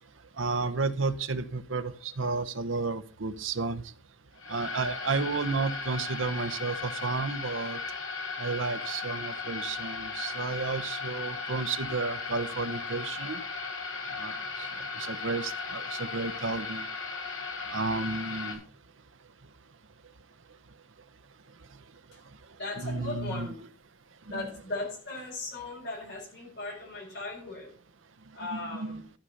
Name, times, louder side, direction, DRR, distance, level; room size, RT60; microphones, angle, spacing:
voice 1, 0.4-3.8 4.5-7.8 8.4-13.4 14.2-14.7 15.0-16.8 17.7-18.6 22.8-23.5 24.3-24.4 28.5-29.0, right 4 dB, 85° right, 12 dB, 0.9 m, -32 dB
sound 1, 4.4-18.5, left 4 dB, 85° left, 3.0 m, -36 dB
voice 2, 22.6-23.6 24.3-27.7 28.3-29.0, left 2 dB, 60° left, -3 dB, 5.6 m, -37 dB
13.0 x 6.5 x 5.5 m, 0.44 s
head